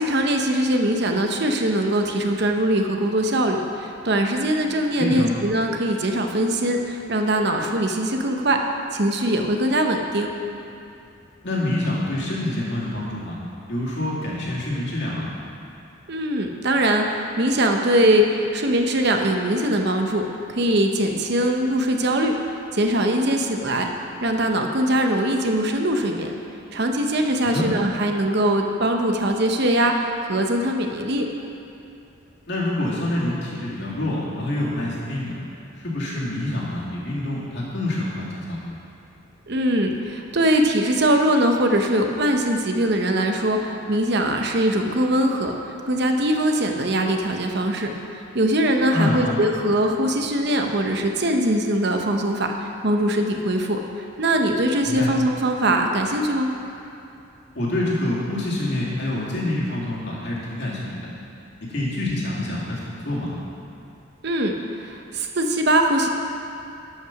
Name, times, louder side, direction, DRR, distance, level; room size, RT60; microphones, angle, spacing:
voice 1, 0.0-8.6 8.9-10.3 16.1-20.2 20.5-22.3 22.7-23.9 24.2-26.3 26.7-31.3 39.5-56.5 64.2-66.1, right 1 dB, 50° right, 3 dB, 0.8 m, -22 dB
voice 2, 5.0-5.3 11.4-13.4 13.7-15.3 27.4-27.7 32.5-35.3 35.8-38.8 48.9-49.3 54.8-55.1 57.5-61.1 61.6-63.3, left 1 dB, 55° left, -6 dB, 2.3 m, -26 dB
12.5 x 5.7 x 5.8 m, 2.7 s
head